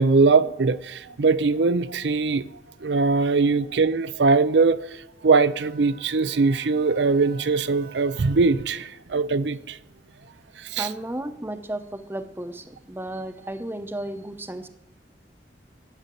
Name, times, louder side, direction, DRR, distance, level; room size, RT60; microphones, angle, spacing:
voice 1, 0.0-2.5 2.8-5.0 5.2-9.8 10.6-10.9, right 4 dB, 80° right, 0.5 m, -21 dB
Bowed string instrument, 5.4-9.0, right 4 dB, 60° right, 1.3 m, -49 dB
voice 2, 10.8-14.7, right 1 dB, 15° right, 0.8 m, -33 dB
12.5 x 7.8 x 8.5 m
head